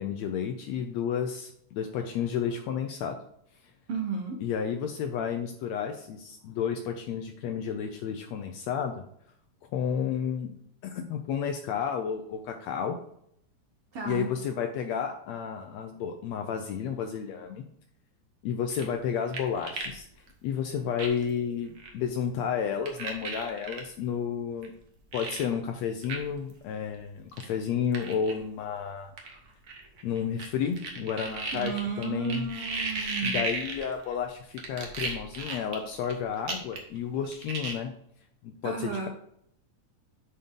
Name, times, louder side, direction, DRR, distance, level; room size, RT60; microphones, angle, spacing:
voice 1, 0.0-3.2 4.4-9.0 9.7-10.5 10.8-13.0 14.1-17.6 18.4-20.1 20.4-24.7 25.1-29.1 30.0-32.5 33.2-37.9 38.4-39.1, left 7 dB, 75° left, 5 dB, 1.6 m, -31 dB
voice 2, 3.9-4.4 13.9-14.3 31.5-33.4 38.6-39.1, right 5 dB, 65° right, 1 dB, 1.5 m, -33 dB
sound 1, 18.7-20.0 20.3-20.4 21.0-21.3 21.8-21.9 22.9-23.8 24.6-24.7 25.1-25.4 26.0-26.2 26.5-26.6 27.3-27.4 27.9-28.3 29.2-30.5 30.8-34.1 34.6-36.1 36.5-37.0 37.2-37.7, right 4 dB, 80° right, 0.8 m, -35 dB
8.8 x 4.3 x 3.7 m, 0.69 s
omnidirectional pair, 3.6 m